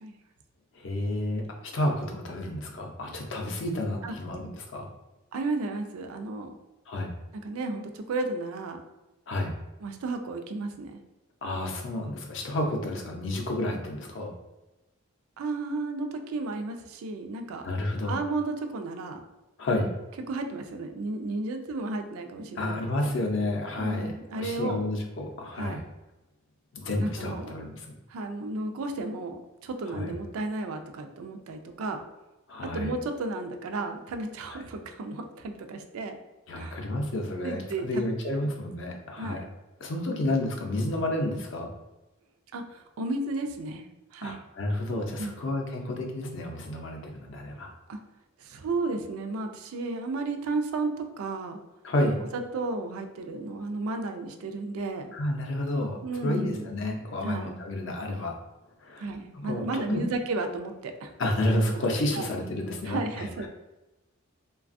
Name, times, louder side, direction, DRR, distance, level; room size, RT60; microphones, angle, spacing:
voice 1, 0.7-4.9 6.9-7.1 9.3-9.5 11.4-14.3 17.6-18.2 19.6-19.9 22.6-25.8 26.7-27.9 29.8-30.1 32.5-32.9 34.5-34.6 36.5-39.5 39.8-41.7 44.2-47.7 51.8-52.2 55.1-58.3 58.8-59.1 59.3-60.0 61.2-63.5, left 1 dB, 60° left, 2 dB, 0.5 m, -30 dB
voice 2, 5.3-6.6 7.3-8.8 9.8-11.0 15.4-17.7 18.1-19.2 20.3-23.1 23.8-24.8 25.6-25.8 27.0-27.5 28.1-32.0 32.6-36.1 36.5-36.8 37.4-38.5 39.2-39.4 42.5-43.8 44.1-44.4 45.2-45.4 47.9-48.0 48.4-51.6 52.3-55.1 56.0-56.7 57.2-57.5 59.0-61.1 62.1-62.3 62.9-63.5, right 2 dB, 85° right, 5 dB, 0.4 m, -33 dB
3.2 x 2.2 x 2.5 m, 1.0 s
head